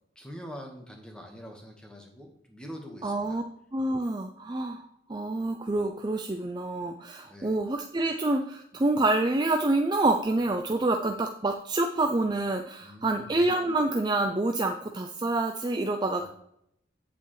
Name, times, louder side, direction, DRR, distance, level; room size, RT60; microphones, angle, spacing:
voice 1, 0.1-3.4 7.2-7.6 12.8-13.3 16.0-16.3, equal, 5° left, 1 dB, 1.4 m, -44 dB
voice 2, 3.0-3.4 3.7-16.3, right 2 dB, 20° right, 5 dB, 0.4 m, -27 dB
8.8 x 8.1 x 3.2 m, 0.75 s
head